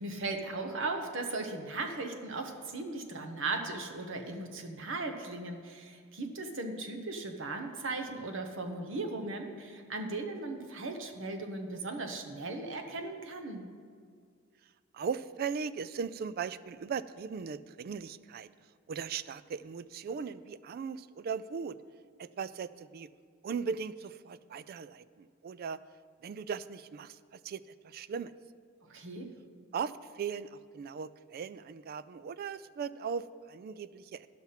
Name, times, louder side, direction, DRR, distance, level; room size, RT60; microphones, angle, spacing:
voice 1, 0.0-13.7 28.9-29.3, right 3 dB, 65° right, 5 dB, 1.0 m, -37 dB
voice 2, 14.9-18.5 18.9-21.8 22.2-23.1 23.4-25.8 26.2-28.3 29.7-34.3, right 6 dB, 50° right, 15 dB, 0.3 m, -38 dB
11.5 x 5.9 x 5.7 m, 2.1 s
head